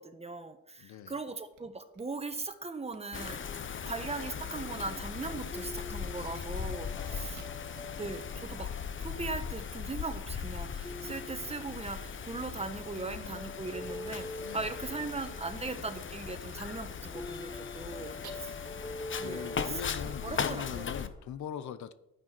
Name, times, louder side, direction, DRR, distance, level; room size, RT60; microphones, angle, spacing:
voice 1, 0.0-3.4 3.7-7.4 8.0-8.7 9.0-14.3 14.5-18.5 19.2-20.9, right 3 dB, 20° right, 1.3 m, -39 dB
voice 2, 0.8-1.2 3.5-4.0 6.1-6.3 6.9-7.7 13.0-13.5 14.4-14.7 17.0-17.2 19.2-21.9, left 9 dB, 70° left, 0.9 m, -43 dB
sound 1, 1.5-1.6 1.9-2.0 2.3-2.4 2.9-3.7 4.0-4.4 4.7-5.1 5.5-5.6 6.0-6.4 6.9-7.8 8.1-8.2 8.5-10.4 10.8-11.7 12.7-13.0 13.5-13.7 14.0-14.1 15.0-15.3 15.5-15.6 16.5-16.6 17.1-17.2 17.7-18.3, right 9 dB, 75° right, 2.0 m, -56 dB
Wind, 3.1-21.1, left 7 dB, 40° left, 1.0 m, -39 dB
sound 2, 5.5-9.0 10.8-12.3 12.6-16.0 17.1-21.0, left 2 dB, 15° left, 0.6 m, -45 dB
11.5 x 9.8 x 4.6 m
cardioid pair, 90°, 30 cm